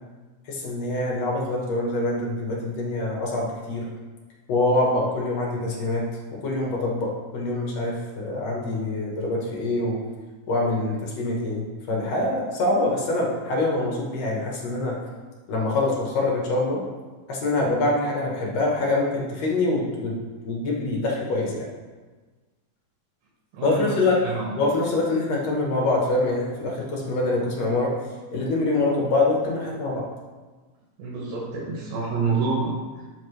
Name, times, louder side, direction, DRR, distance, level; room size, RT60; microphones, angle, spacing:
voice 1, 0.5-3.8 4.5-6.0 6.4-10.0 10.5-11.6 11.9-15.0 15.5-16.8 17.3-20.2 20.4-21.7 23.6-24.2 24.6-27.9 28.3-30.0, left 2 dB, 60° left, -2 dB, 2.0 m, -25 dB
voice 2, 23.5-24.5 31.0-33.0, right 4 dB, 70° right, -4 dB, 2.9 m, -28 dB
11.5 x 5.5 x 3.3 m, 1.3 s
omnidirectional pair, 4.2 m